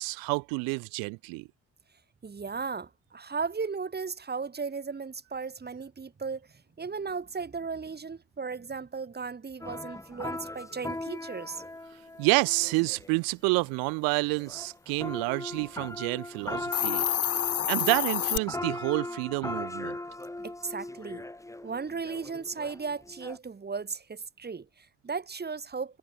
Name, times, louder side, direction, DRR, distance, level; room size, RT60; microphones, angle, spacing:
voice 1, 0.0-1.5 12.2-17.0 17.7-20.0, right 30 dB, 85° right, 0.5 m, -28 dB
voice 2, 2.2-11.6 20.4-21.2 21.6-26.0, right 5 dB, 30° right, 1.3 m, -36 dB
sound 1, 9.6-13.2 13.6-13.7 14.1-23.4, left 2 dB, 10° left, 1.3 m, -39 dB
Hiss, 16.6-18.4, left 11 dB, 45° left, 0.6 m, -28 dB
supercardioid pair, 55°, 34 cm